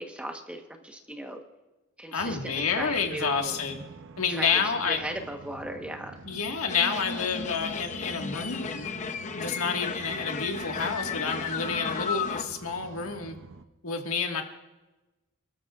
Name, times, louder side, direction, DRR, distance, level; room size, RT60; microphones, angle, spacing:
voice 1, 0.0-1.4 2.0-3.6 4.3-4.6 4.9-6.2, right 1 dB, 5° right, 4 dB, 1.1 m, -37 dB
voice 2, 2.1-3.8 4.2-5.0 6.3-8.9 9.3-13.4 13.8-14.4, left 5 dB, 80° left, 3 dB, 1.7 m, -29 dB
sound 1, 2.2-13.6, right 3 dB, 60° right, 0.7 m, -46 dB
sound 2, 6.7-12.4, left 5 dB, 35° left, 0.7 m, -34 dB
28.0 x 13.0 x 2.4 m, 1.1 s
head